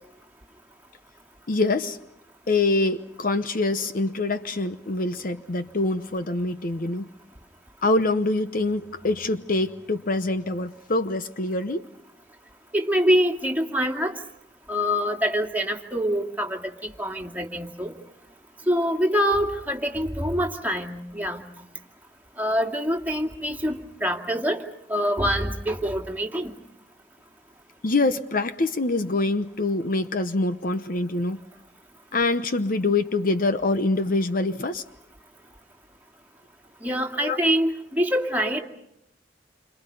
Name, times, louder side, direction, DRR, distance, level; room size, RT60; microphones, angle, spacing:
voice 1, 1.5-2.0 2.5-7.1 7.8-11.8 27.8-31.4 32.1-34.8 37.2-37.4, left 2 dB, 50° left, 10 dB, 0.9 m, -25 dB
voice 2, 12.7-14.2 14.7-17.9 18.7-21.4 22.4-24.6 24.9-26.6 36.8-38.6, equal, 10° right, 1 dB, 2.4 m, -25 dB
29.0 x 26.5 x 5.4 m, 0.79 s
head